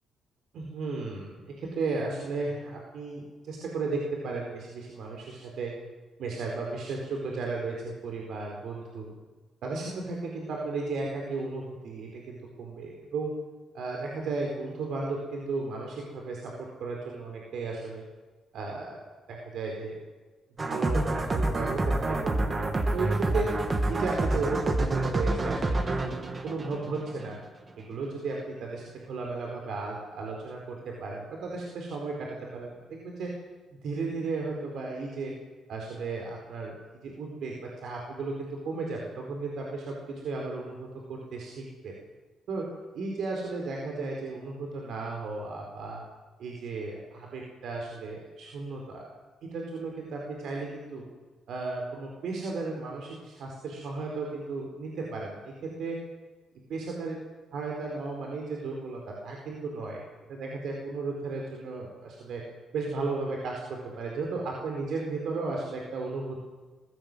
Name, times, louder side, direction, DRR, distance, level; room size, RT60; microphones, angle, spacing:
voice 1, 0.5-5.7 6.2-9.1 9.6-13.3 13.7-18.0 18.5-19.0 19.3-20.0 20.6-23.5 23.9-27.4 27.8-33.3 33.8-35.3 35.7-36.7 37.0-42.0 42.5-42.7 42.9-46.0 46.4-49.0 49.4-51.1 51.5-56.0 56.7-57.2 57.5-60.0 60.3-62.4 62.7-66.4, right 3 dB, 70° right, 0 dB, 4.4 m, -35 dB
sound 1, 20.6-27.4, right 2 dB, 30° right, 2.6 m, -28 dB
22.0 x 16.5 x 8.0 m, 1.3 s
cardioid pair, 90°, 0 cm